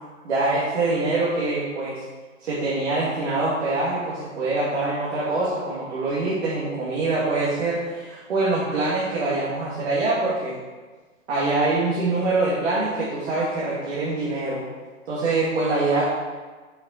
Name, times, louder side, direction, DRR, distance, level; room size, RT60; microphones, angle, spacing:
voice 1, 0.2-2.0 2.4-10.6 11.3-14.6 15.1-16.0, right 2 dB, 55° right, -8 dB, 1.9 m, -24 dB
6.5 x 5.5 x 4.1 m, 1.4 s
hypercardioid pair, 175°, 39 cm